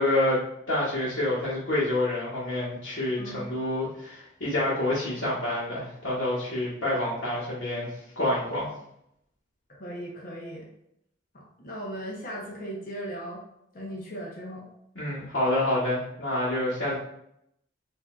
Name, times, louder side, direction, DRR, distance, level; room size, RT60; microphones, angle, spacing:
voice 1, 0.0-7.9 8.2-8.7 14.9-17.0, left 1 dB, 75° left, -10 dB, 1.2 m, -27 dB
voice 2, 9.7-10.7 11.3-13.4 13.7-14.7, equal, 45° left, -3 dB, 0.7 m, -37 dB
4.9 x 2.6 x 2.4 m, 0.78 s
head